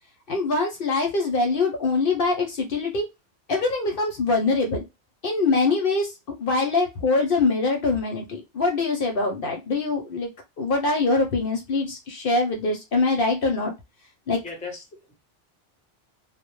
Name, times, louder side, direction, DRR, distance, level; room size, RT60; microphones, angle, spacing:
voice 1, 0.3-3.1 3.5-4.8 5.2-6.1 6.4-10.3 10.6-13.7 14.3-14.4, left 3 dB, 60° left, 2 dB, 0.7 m, -23 dB
voice 2, 14.4-15.1, left 4 dB, 10° left, 1 dB, 0.4 m, -37 dB
2.1 x 2.0 x 2.9 m, 0.22 s
omnidirectional pair, 1.2 m